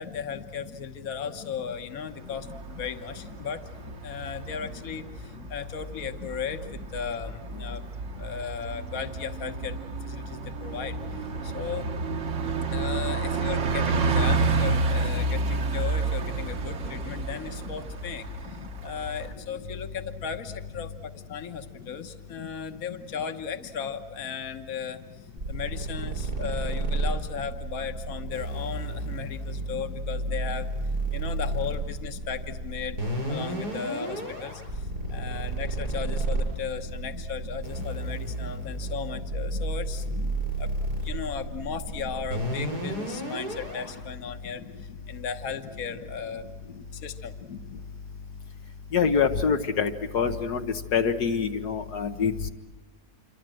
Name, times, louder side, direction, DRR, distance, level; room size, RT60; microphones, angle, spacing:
voice 1, 0.0-3.6 4.0-6.7 6.9-7.9 8.2-11.9 12.7-18.3 18.8-30.7 31.1-33.0 33.3-40.7 41.0-46.4 46.9-47.3, left 7 dB, 65° left, 8 dB, 1.7 m, -36 dB
Bus, 2.3-19.3, right 3 dB, 55° right, 1.4 m, -30 dB
sound 1, 25.4-44.0, right 2 dB, 85° right, 7.6 m, -32 dB
voice 2, 48.9-50.7 50.9-52.5, left 6 dB, 80° left, 5 dB, 1.7 m, -25 dB
27.5 x 25.0 x 7.7 m, 1.1 s
omnidirectional pair, 1.7 m